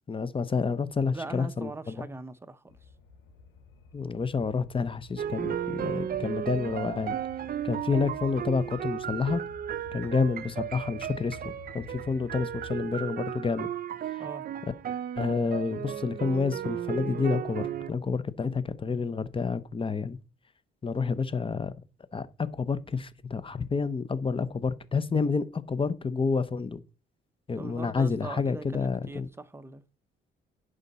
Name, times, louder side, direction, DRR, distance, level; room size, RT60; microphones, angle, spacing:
voice 1, 0.1-2.0 3.9-7.2 7.6-9.4 9.9-13.7 14.1-14.2 15.2-20.2 20.8-21.7 22.1-26.8 27.5-29.3, left 4 dB, 25° left, 0.7 m, -29 dB
voice 2, 1.1-2.9 14.2-14.5 27.6-29.8, right 2 dB, 10° right, 0.8 m, -41 dB
sound 1, 2.7-12.9, left 5 dB, 75° left, 2.9 m, -50 dB
sound 2, 5.2-17.9, right 10 dB, 50° right, 0.5 m, -34 dB
11.0 x 5.2 x 4.2 m
cardioid pair, 90°, 20 cm